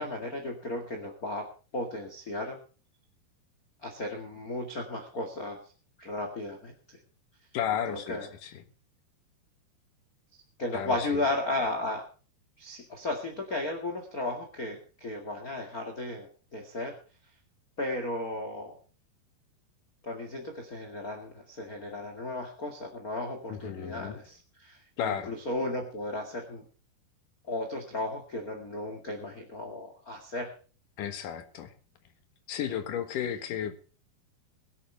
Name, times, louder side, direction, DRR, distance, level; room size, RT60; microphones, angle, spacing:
voice 1, 0.0-1.5 1.7-2.6 3.8-5.6 6.0-7.0 7.9-8.3 10.6-12.0 12.6-16.9 17.8-18.8 20.0-26.6 27.5-30.5 32.7-32.8, left 2 dB, 35° left, 2 dB, 1.5 m, -35 dB
voice 2, 7.5-8.6 10.7-11.2 23.5-24.2 25.0-25.3 31.0-31.7 32.5-33.7, left 9 dB, 60° left, 8 dB, 2.7 m, -33 dB
22.0 x 10.5 x 3.5 m, 0.36 s
omnidirectional pair, 4.8 m